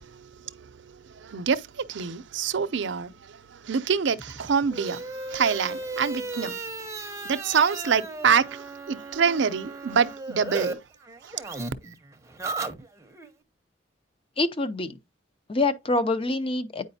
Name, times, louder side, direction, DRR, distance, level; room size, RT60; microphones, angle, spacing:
voice 1, 0.0-6.6 7.0-10.8, right 6 dB, 60° right, 0.5 m, -26 dB
sound 1, 4.1-10.7 11.0-13.3, right 3 dB, 15° right, 0.7 m, -36 dB
voice 2, 14.4-15.0 15.5-16.9, left 2 dB, 30° left, 0.6 m, -26 dB
8.8 x 4.9 x 2.7 m
head